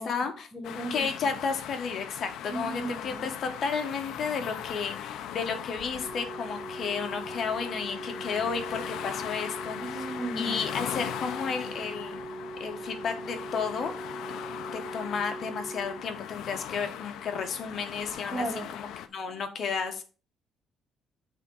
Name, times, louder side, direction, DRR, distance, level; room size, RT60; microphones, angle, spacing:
voice 1, 0.0-0.5 0.9-9.8 10.4-12.2 12.6-13.9 14.7-18.5 18.7-20.0, left 5 dB, 45° left, 6 dB, 1.3 m, -32 dB
voice 2, 0.5-1.3 2.5-3.3 9.8-10.6 18.3-18.6, right 2 dB, 5° right, -2 dB, 1.8 m, -36 dB
sound 1, 0.6-19.1, left 10 dB, 75° left, 0.7 m, -39 dB
Organ, 6.0-16.9 18.0-18.2, right 2 dB, 25° right, 0.3 m, -41 dB
8.3 x 3.7 x 5.4 m, 0.36 s
cardioid pair, 145°, 0 cm